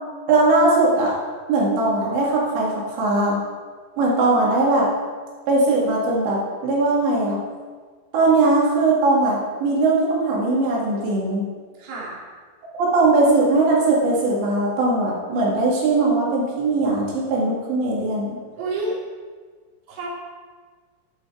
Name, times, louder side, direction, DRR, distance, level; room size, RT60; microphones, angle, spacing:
voice 1, 0.3-1.2 1.5-3.4 4.0-4.9 5.5-7.4 8.1-11.4 12.8-18.4, right 2 dB, 65° right, -4 dB, 3.8 m, -19 dB
voice 2, 11.8-12.2 18.6-18.9 19.9-20.1, right 2 dB, 40° right, -4 dB, 2.4 m, -29 dB
11.0 x 9.1 x 4.7 m, 1.5 s
omnidirectional pair, 5.9 m